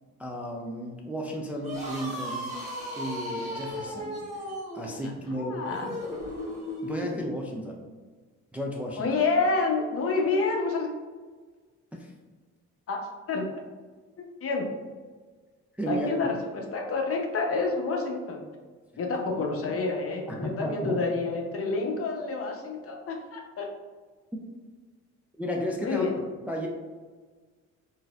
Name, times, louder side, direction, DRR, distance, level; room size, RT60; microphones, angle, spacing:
voice 1, 0.2-2.5 3.0-4.3 4.7-5.6 6.8-7.9 8.5-9.2 11.9-12.1 15.8-16.3 19.4-19.5 20.3-21.0 25.4-26.1 26.5-26.7, equal, 5° right, -1 dB, 0.3 m, -33 dB
sound 1, 1.5-7.2, equal, 25° right, 1.2 m, -36 dB
voice 2, 5.0-5.9 9.0-10.9 12.9-13.0 13.3-13.5 14.2-14.7 15.9-18.4 19.0-23.7 25.8-26.2, left 3 dB, 50° left, 1 dB, 0.7 m, -28 dB
3.9 x 2.7 x 2.3 m, 1.4 s
cardioid pair, 90°, 30 cm